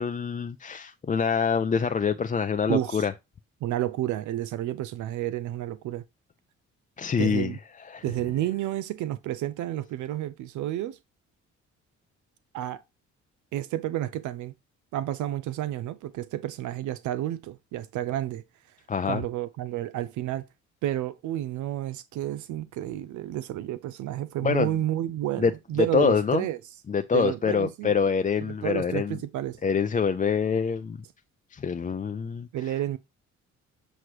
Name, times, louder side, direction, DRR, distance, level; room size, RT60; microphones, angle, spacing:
voice 1, 0.0-3.1 7.0-7.5 7.8-8.0 18.9-19.2 24.4-24.7 25.4-25.5 25.8-26.4 26.9-29.2 29.6-31.0 31.5-32.7, left 6 dB, 25° left, 0.5 m, -25 dB
voice 2, 2.7-3.1 3.6-6.0 7.2-7.6 8.0-11.0 12.5-12.8 13.5-14.5 14.9-18.4 19.0-20.4 20.8-26.6 27.1-27.9 28.6-29.6 32.5-33.0, right 13 dB, 75° right, 0.5 m, -30 dB
7.7 x 3.0 x 4.8 m
cardioid pair, 90°, 30 cm